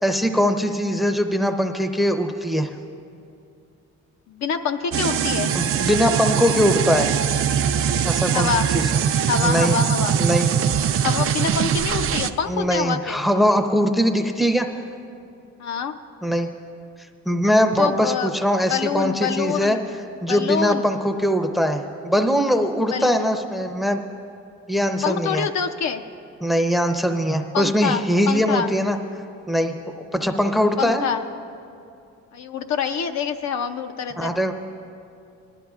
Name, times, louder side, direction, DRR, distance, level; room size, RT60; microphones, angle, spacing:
voice 1, 0.0-2.7 5.5-7.1 8.0-8.9 9.4-9.8 10.2-10.5 12.5-14.7 16.2-16.5 17.3-19.8 20.2-24.0 24.7-25.5 26.4-29.0 29.5-29.7 30.1-31.0 34.2-34.5, equal, ahead, 6 dB, 0.6 m, -21 dB
voice 2, 4.3-5.5 8.3-8.7 9.3-10.2 11.0-13.2 15.6-16.0 17.8-18.3 18.7-19.9 20.3-20.9 22.9-23.3 25.0-26.0 27.5-28.7 30.8-31.2 32.3-34.3, left 7 dB, 65° left, 7 dB, 0.6 m, -26 dB
sound 1, 4.9-12.3, right 8 dB, 50° right, 0.5 m, -22 dB
19.0 x 11.5 x 2.4 m, 2.5 s
cardioid pair, 90°, 30 cm